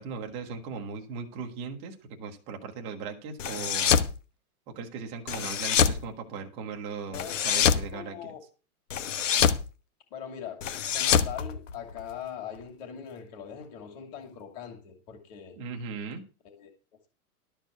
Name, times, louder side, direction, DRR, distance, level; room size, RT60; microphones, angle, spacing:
voice 1, 0.0-4.1 4.7-8.3 15.6-16.2, right 5 dB, 15° right, 0.9 m, -38 dB
sound 1, 3.4-4.1 5.3-6.0 7.1-7.9 8.9-9.6 10.6-12.1, left 7 dB, 55° left, 1.2 m, -25 dB
voice 2, 7.1-8.4 10.1-15.6 16.4-16.7, left 8 dB, 25° left, 2.5 m, -41 dB
12.5 x 4.5 x 8.0 m
hypercardioid pair, 180°, 44 cm